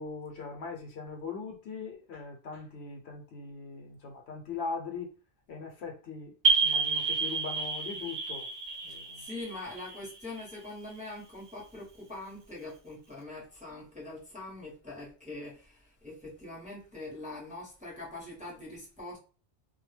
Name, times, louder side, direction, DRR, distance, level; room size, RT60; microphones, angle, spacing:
voice 1, 0.0-5.1 5.5-6.3 6.6-8.5 8.8-9.3, left 4 dB, 70° left, 0.9 m, -40 dB
sound 1, 6.4-10.9, right 4 dB, 55° right, 0.6 m, -30 dB
voice 2, 8.9-19.2, left 2 dB, 10° right, 0.7 m, -43 dB
2.2 x 2.1 x 3.2 m
omnidirectional pair, 1.2 m